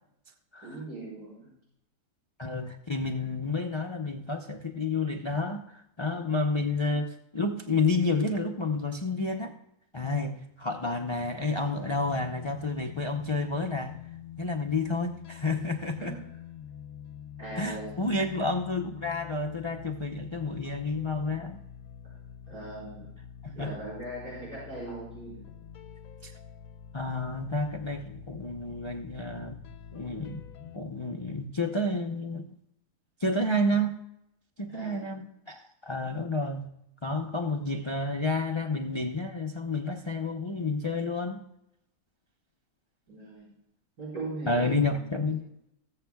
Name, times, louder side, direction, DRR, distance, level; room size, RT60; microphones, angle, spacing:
voice 1, 0.6-1.5 16.0-16.2 17.4-18.3 22.0-22.1 22.5-23.1 23.5-25.4 34.7-35.2 43.1-43.5 44.0-45.2, right 2 dB, 75° right, -8 dB, 5.3 m, -40 dB
voice 2, 2.4-9.5 9.9-14.1 14.4-16.2 17.6-21.6 23.4-23.7 26.2-26.3 26.9-29.6 29.9-32.6 33.2-34.0 34.6-36.7 37.0-41.4 44.5-45.5, left 2 dB, 35° left, 3 dB, 0.4 m, -30 dB
sound 1, 11.9-30.8, left 9 dB, 70° left, 1.0 m, -46 dB
20.0 x 7.8 x 2.3 m, 0.81 s
omnidirectional pair, 1.6 m